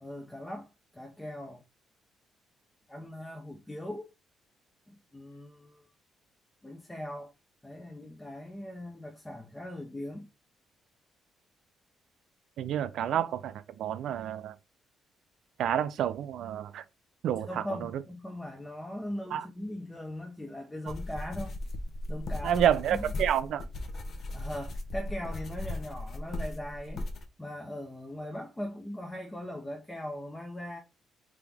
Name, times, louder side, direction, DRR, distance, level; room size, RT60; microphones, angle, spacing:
voice 1, 0.0-1.6 2.9-4.1 4.9-5.9 6.6-7.3 7.6-10.3 17.5-21.6 22.1-22.6 24.3-27.1 27.4-30.8, left 1 dB, 10° left, 0.7 m, -40 dB
voice 2, 12.6-14.6 15.6-16.8 17.2-17.9 19.3-19.5 22.4-23.7, right 10 dB, 75° right, 0.4 m, -29 dB
sound 1, 20.9-27.2, left 1 dB, 55° left, 0.9 m, -37 dB
3.6 x 2.9 x 3.4 m
cardioid pair, 90°, 0 cm